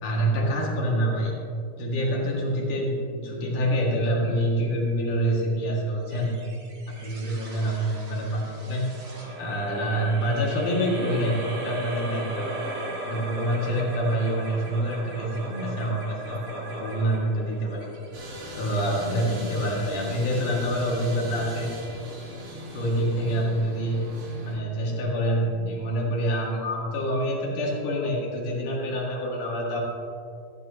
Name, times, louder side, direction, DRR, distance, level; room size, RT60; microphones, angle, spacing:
voice 1, 0.0-1.3 1.8-6.3 6.9-8.8 9.4-12.5 13.0-17.9 18.6-21.7 22.7-24.0 24.5-29.8, equal, 70° left, -3 dB, 3.4 m, -26 dB
sound 1, 6.1-18.7, right 1 dB, 45° right, 2.3 m, -38 dB
sound 2, 18.1-24.6, equal, 65° right, 4.0 m, -39 dB
14.5 x 12.0 x 2.8 m, 2.4 s
omnidirectional pair, 3.8 m